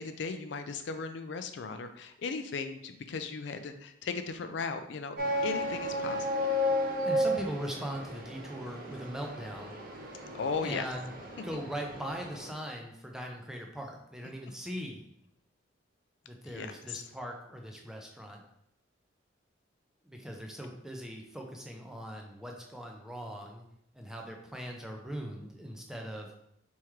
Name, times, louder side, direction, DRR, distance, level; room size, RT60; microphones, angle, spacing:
voice 1, 0.0-5.2 5.4-6.5 10.3-10.9 16.5-17.0, left 4 dB, 65° left, 8 dB, 0.4 m, -37 dB
sound 1, 5.2-12.5, left 1 dB, 50° right, 0.7 m, -33 dB
voice 2, 7.0-9.8 10.6-11.1 11.4-15.0 16.3-18.4 20.0-23.7 23.9-26.3, equal, 5° right, 1 dB, 0.5 m, -40 dB
4.4 x 3.6 x 3.1 m, 0.75 s
head